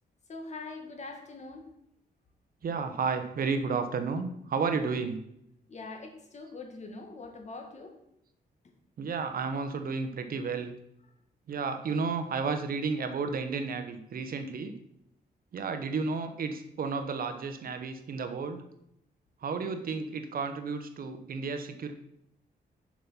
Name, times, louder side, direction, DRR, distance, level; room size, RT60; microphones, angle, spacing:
voice 1, 0.3-1.7 5.7-8.0, left 3 dB, 45° left, 3 dB, 1.8 m, -43 dB
voice 2, 2.6-5.2 9.0-10.7 11.5-14.7 15.5-18.6 19.4-21.9, right 5 dB, 60° right, 8 dB, 1.0 m, -32 dB
7.2 x 6.2 x 5.7 m, 0.77 s
cardioid pair, 115°, 17 cm